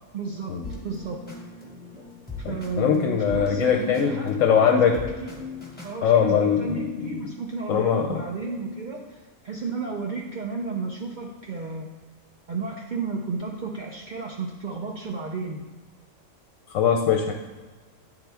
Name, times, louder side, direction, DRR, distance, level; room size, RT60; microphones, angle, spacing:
voice 1, 0.1-0.6 0.8-1.2 2.4-5.3 5.8-11.9 12.5-15.6, right 4 dB, 90° right, 0 dB, 0.4 m, -33 dB
sound 1, 0.6-6.0, left 3 dB, 10° left, 0.8 m, -39 dB
voice 2, 2.4-5.0 6.0-6.6 7.7-8.2 16.7-17.3, left 7 dB, 70° left, 3 dB, 0.9 m, -21 dB
9.0 x 3.6 x 3.4 m, 1.3 s
omnidirectional pair, 1.5 m